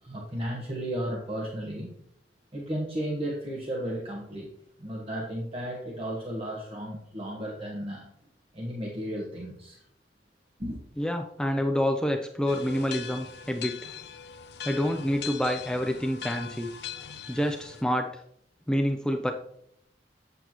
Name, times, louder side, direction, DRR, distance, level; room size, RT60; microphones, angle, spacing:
voice 1, 0.0-1.9 2.5-4.5 4.8-8.1 8.5-9.8 10.6-10.8, right 1 dB, 35° right, -2 dB, 1.3 m, -34 dB
voice 2, 11.0-13.8 14.6-16.7 17.3-18.2 18.7-19.3, equal, 5° left, 4 dB, 0.4 m, -27 dB
sound 1, 12.5-17.8, left 8 dB, 70° left, 0.6 m, -40 dB
8.3 x 8.0 x 3.0 m, 0.70 s
head